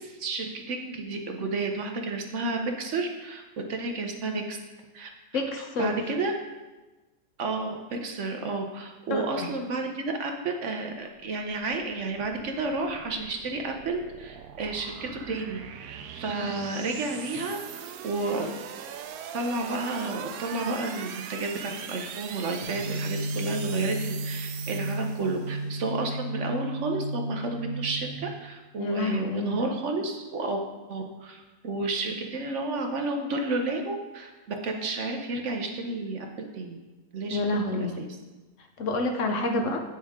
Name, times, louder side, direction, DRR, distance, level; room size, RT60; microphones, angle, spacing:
voice 1, 0.0-3.4 3.7-4.6 4.9-5.1 5.8-6.3 7.4-18.5 19.3-30.6 30.9-34.3 34.6-36.3 36.5-36.8 37.1-37.4 37.8-38.1, right 3 dB, 60° right, 3 dB, 1.1 m, -31 dB
voice 2, 5.3-6.0 9.1-9.5 16.4-16.5 28.8-29.6 37.3-38.0 38.8-39.8, left 2 dB, 65° left, 3 dB, 1.1 m, -28 dB
sound 1, 11.1-25.7, right 8 dB, 85° right, 1.1 m, -41 dB
sound 2, 22.6-28.2, right 1 dB, 45° left, 2.0 m, -33 dB
8.7 x 6.3 x 3.6 m, 1.2 s
omnidirectional pair, 1.5 m